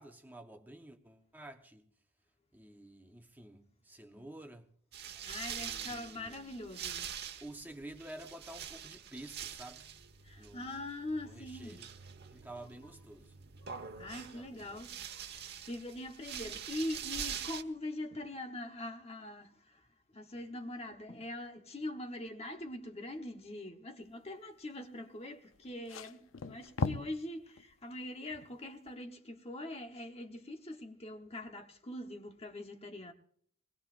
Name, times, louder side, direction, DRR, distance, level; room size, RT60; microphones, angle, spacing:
voice 1, 0.0-1.9 2.5-4.7 5.6-6.5 7.4-9.9 10.4-10.7 11.2-11.9 12.3-13.3 14.3-14.8, right 1 dB, 10° right, 1.0 m, -50 dB
sound 1, 4.9-17.6, right 8 dB, 50° right, 1.3 m, -45 dB
voice 2, 5.2-7.1 10.2-11.8 13.6-19.8 20.1-33.1, left 1 dB, 30° left, 1.1 m, -43 dB
sound 2, 25.5-27.2 27.6-27.7 28.9-29.0, left 4 dB, 65° left, 0.6 m, -37 dB
21.5 x 20.0 x 2.6 m
head